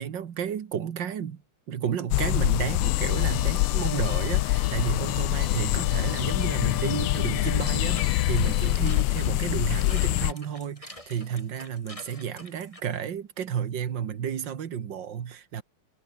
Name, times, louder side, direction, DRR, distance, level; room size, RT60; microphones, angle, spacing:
voice 1, 0.0-1.4 1.7-15.6, right 8 dB, 60° right, 2.0 m, -32 dB
sound 1, 2.1-10.3, left 17 dB, 80° left, 1.5 m, -25 dB
Guitar, 2.8-8.7, left 8 dB, 65° left, 2.2 m, -40 dB
sound 2, 7.6-12.8, left 1 dB, 15° left, 7.1 m, -46 dB
omnidirectional pair, 2.4 m